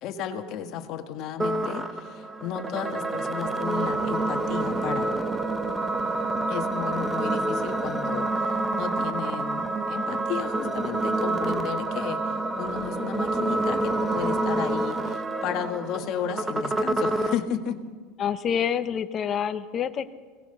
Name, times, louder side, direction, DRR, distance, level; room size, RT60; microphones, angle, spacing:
voice 1, 0.0-5.1 6.5-17.8, left 9 dB, 50° left, 6 dB, 1.7 m, -33 dB
sound 1, 1.4-17.4, right 2 dB, 10° right, 1.0 m, -28 dB
voice 2, 18.2-20.1, left 8 dB, 30° left, 9 dB, 0.9 m, -27 dB
23.5 x 18.0 x 6.8 m, 1.4 s
supercardioid pair, 140°, 0 cm